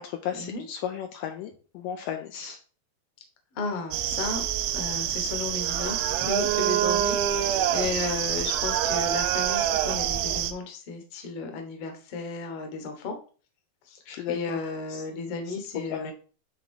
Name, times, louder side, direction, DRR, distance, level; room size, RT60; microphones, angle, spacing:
voice 1, 0.0-2.6 14.1-16.1, left 9 dB, 85° left, 4 dB, 2.0 m, -35 dB
voice 2, 3.5-4.4 4.7-13.2 13.8-14.0 14.3-16.1, left 3 dB, 60° left, 5 dB, 1.6 m, -34 dB
sound 1, 3.9-10.5, right 11 dB, 80° right, 2.4 m, -26 dB
9.7 x 3.7 x 3.7 m, 0.38 s
omnidirectional pair, 4.3 m